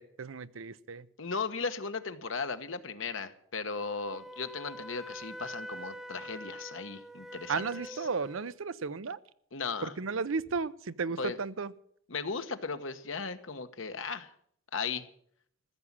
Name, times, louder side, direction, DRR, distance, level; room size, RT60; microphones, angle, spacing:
voice 1, 0.0-1.1 7.5-9.2 9.8-11.7, right 5 dB, 90° right, 0.7 m, -34 dB
voice 2, 1.2-8.1 9.5-9.9 11.2-11.4 12.1-14.3 14.7-15.0, left 5 dB, 75° left, 1.2 m, -36 dB
Wind instrument woodwind instrument, 3.7-8.5, equal, ahead, 0.5 m, -45 dB
15.0 x 7.4 x 9.6 m
head